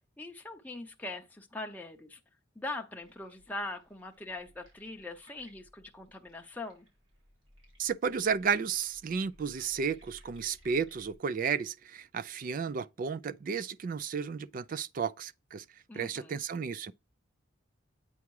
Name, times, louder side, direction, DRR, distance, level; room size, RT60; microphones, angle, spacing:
voice 1, 0.2-2.2 2.6-6.9 15.9-16.4, left 2 dB, 10° left, 0.7 m, -41 dB
sound 1, 3.0-11.1, equal, 70° right, 3.6 m, -61 dB
voice 2, 7.8-15.6 15.9-16.9, right 6 dB, 40° right, 0.3 m, -33 dB
8.3 x 3.5 x 4.7 m
head